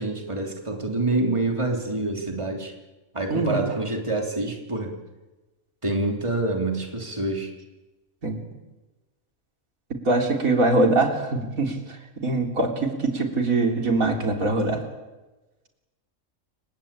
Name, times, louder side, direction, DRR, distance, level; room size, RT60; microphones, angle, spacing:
voice 1, 0.0-2.7 3.1-5.0 5.8-7.5, right 2 dB, 20° right, 3 dB, 3.4 m, -26 dB
voice 2, 3.3-3.6 8.2-8.4 10.1-11.8 12.2-14.8, right 2 dB, 90° right, 4 dB, 4.0 m, -22 dB
29.0 x 17.5 x 8.9 m, 1.1 s
omnidirectional pair, 1.4 m